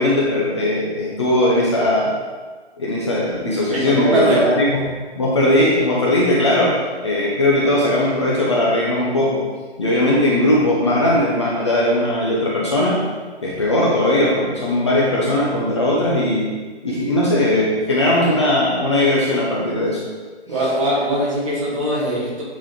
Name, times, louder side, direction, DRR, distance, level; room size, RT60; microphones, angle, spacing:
voice 1, 0.0-2.1 2.8-9.4 9.8-13.0 13.4-16.5 16.8-20.0, left 1 dB, 25° left, -5 dB, 0.8 m, -19 dB
voice 2, 3.7-4.5 20.5-22.4, right 1 dB, 30° right, -5 dB, 1.7 m, -21 dB
8.7 x 4.4 x 3.7 m, 1.4 s
hypercardioid pair, 165°, 34 cm